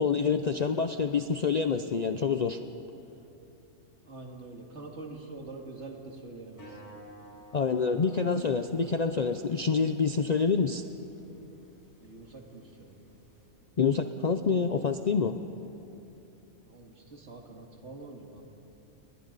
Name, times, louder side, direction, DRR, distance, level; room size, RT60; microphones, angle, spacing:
voice 1, 0.0-2.6 7.5-10.8 13.8-15.4, left 5 dB, 50° left, 8 dB, 0.5 m, -27 dB
voice 2, 4.1-7.1 12.0-13.0 16.6-18.4, right 3 dB, 60° right, 1 dB, 2.4 m, -45 dB
sound 1, 6.5-13.5, right 1 dB, 15° left, 5.4 m, -54 dB
30.0 x 21.5 x 4.0 m, 2.9 s
omnidirectional pair, 1.4 m